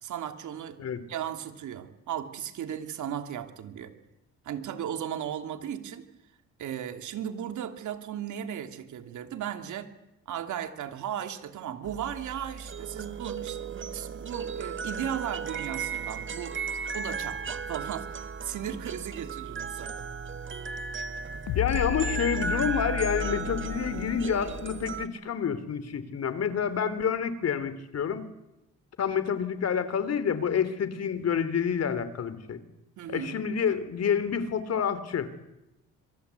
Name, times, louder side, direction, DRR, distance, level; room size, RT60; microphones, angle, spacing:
voice 1, 0.0-0.8 1.1-3.9 4.4-6.1 6.6-9.9 10.3-16.6 16.9-19.9 33.0-33.3, right 9 dB, 75° right, 7 dB, 2.9 m, -36 dB
sound 1, 11.8-25.1, right 5 dB, 40° right, 2.0 m, -36 dB
sound 2, 21.5-24.9, left 13 dB, 75° left, 0.9 m, -34 dB
voice 2, 21.5-28.3 29.0-32.6 33.1-35.3, left 7 dB, 55° left, 13 dB, 3.2 m, -28 dB
26.0 x 23.5 x 8.3 m, 0.92 s
cardioid pair, 90°, 30 cm